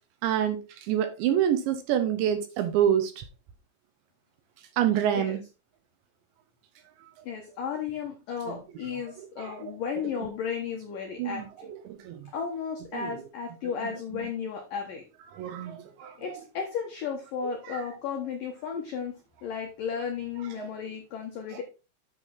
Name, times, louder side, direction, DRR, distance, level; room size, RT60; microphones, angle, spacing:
voice 1, 0.2-3.2 4.8-5.4 8.5-8.6 9.4-9.7 11.2-12.3 12.9-13.1 13.6-14.3 15.3-16.4 17.4-17.8 20.6-20.7, right 10 dB, 75° right, 3.0 m, -28 dB
voice 2, 7.2-11.7 12.3-15.0 16.2-21.6, left 7 dB, 80° left, 1.9 m, -34 dB
9.0 x 6.3 x 3.8 m
omnidirectional pair, 5.8 m